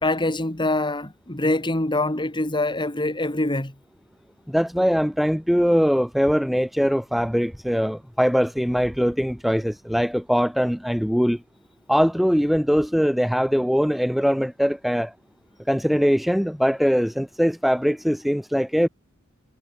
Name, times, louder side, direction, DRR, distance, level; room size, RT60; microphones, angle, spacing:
voice 1, 0.0-3.7, left 2 dB, 20° left, 2.7 m, -24 dB
voice 2, 4.5-11.4 11.9-15.1 15.7-18.9, equal, ahead, 1.0 m, -21 dB
head